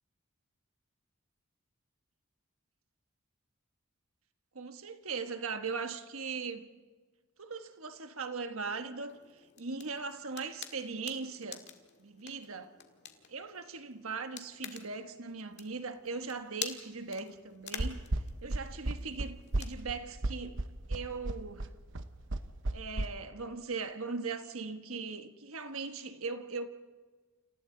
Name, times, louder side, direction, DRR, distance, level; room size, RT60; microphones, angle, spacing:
voice 1, 4.5-6.7 7.4-9.2 9.6-11.6 12.0-12.7 13.3-18.0 18.4-20.6 20.9-21.7 22.7-26.7, right 4 dB, 80° right, 1.3 m, -39 dB
sound 1, 9.1-19.8, left 9 dB, 55° left, 1.9 m, -48 dB
sound 2, 17.8-23.1, right 2 dB, 60° right, 1.0 m, -33 dB
29.5 x 28.0 x 3.9 m
head